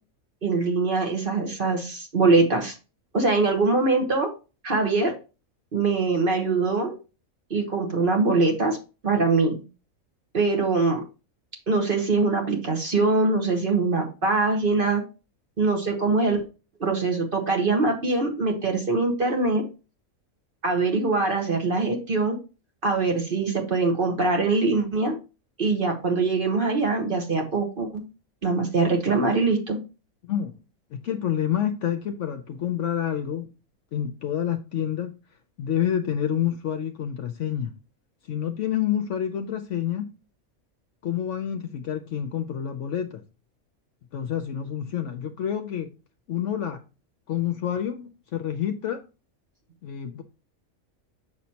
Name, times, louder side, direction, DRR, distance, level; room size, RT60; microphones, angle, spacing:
voice 1, 0.4-2.8 3.1-4.3 4.6-5.1 5.7-6.9 7.5-8.8 9.0-9.6 10.3-11.0 11.7-15.0 15.6-16.4 16.8-19.6 20.6-22.4 22.8-25.2 25.6-28.0 28.4-29.8, right 3 dB, 40° right, 1.2 m, -23 dB
voice 2, 30.2-30.5 30.9-33.5 33.9-35.2 35.6-37.7 38.3-40.1 41.0-43.2 44.1-45.9 46.3-46.8 47.3-49.0 49.8-50.2, left 10 dB, 65° left, 0.9 m, -28 dB
6.5 x 5.9 x 2.8 m
omnidirectional pair, 1.5 m